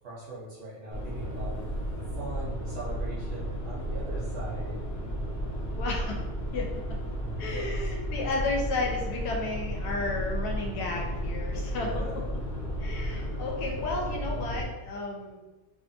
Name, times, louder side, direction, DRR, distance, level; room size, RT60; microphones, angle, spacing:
voice 1, 0.0-4.8 7.4-7.8 11.8-12.3, right 1 dB, 65° right, -7 dB, 0.7 m, -41 dB
sound 1, 0.9-14.6, equal, 55° left, 0.6 m, -33 dB
voice 2, 5.8-6.2 6.5-6.7 7.4-12.1 12.8-15.4, left 3 dB, 75° left, -1 dB, 1.1 m, -33 dB
2.6 x 2.4 x 2.5 m, 1.1 s
omnidirectional pair, 1.7 m